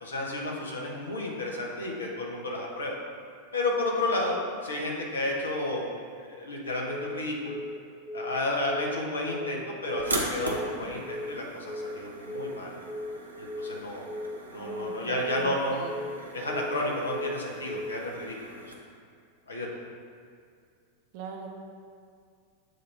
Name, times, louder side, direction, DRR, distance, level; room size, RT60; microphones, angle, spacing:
voice 1, 0.0-3.0 3.5-5.9 6.2-7.6 8.1-12.8 13.4-14.1 14.5-15.8 16.3-18.4 18.6-18.8 19.5-19.8, left 1 dB, 70° left, -1 dB, 1.1 m, -32 dB
Telephone, 6.9-7.2 7.5-7.8 8.1-8.4 8.7-9.0 9.3-9.6 9.9-10.2 10.5-10.8 11.1-11.4 11.7-12.0 12.3-12.6 12.9-13.2 13.5-13.8 14.1-14.4 14.7-15.0 15.3-15.6 15.9-16.2 16.5-16.8 17.1-17.4 17.7-18.0, left 1 dB, 15° left, 1.1 m, -36 dB
sound 1, 10.0-18.7, right 1 dB, 80° right, 0.8 m, -39 dB
voice 2, 14.4-16.0 21.1-21.5, right 5 dB, 45° right, 1 dB, 0.8 m, -41 dB
8.0 x 2.8 x 5.5 m, 2.2 s
figure-of-eight pair, 90°, 0 cm